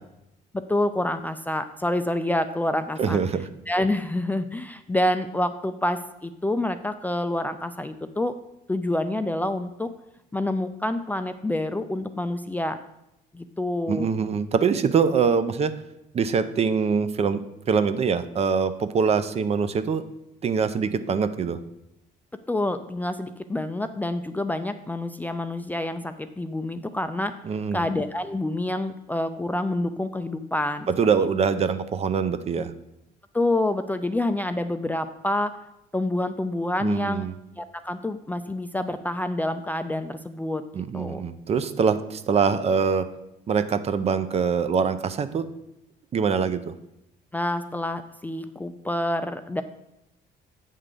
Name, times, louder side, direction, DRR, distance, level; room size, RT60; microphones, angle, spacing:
voice 1, 0.5-3.2 3.7-8.3 8.7-9.9 10.3-12.8 13.3-14.1 22.5-27.3 27.7-30.9 33.3-35.5 35.9-37.3 37.6-40.6 40.9-41.2 47.3-49.6, left 1 dB, 10° left, 9 dB, 0.4 m, -27 dB
voice 2, 3.0-3.4 13.9-15.7 16.1-17.4 17.7-20.0 20.4-21.6 27.4-27.8 30.9-32.7 36.8-37.3 40.7-43.1 43.5-45.5 46.1-46.7, right 6 dB, 40° right, 12 dB, 0.5 m, -23 dB
7.9 x 3.7 x 6.6 m, 0.87 s
cardioid pair, 110°, 17 cm